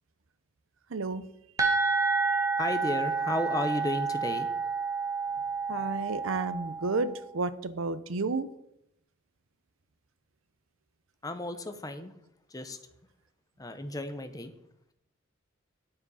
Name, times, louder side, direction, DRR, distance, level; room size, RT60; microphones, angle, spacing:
voice 1, 0.9-1.2 5.7-8.5, right 3 dB, 85° right, 14 dB, 0.7 m, -31 dB
sound 1, 1.6-7.2, right 4 dB, 15° right, 1.2 m, -29 dB
voice 2, 2.6-4.5 11.2-12.1 12.5-12.8 13.6-14.5, left 1 dB, 20° left, 9 dB, 0.8 m, -33 dB
9.7 x 6.9 x 5.6 m, 0.77 s
head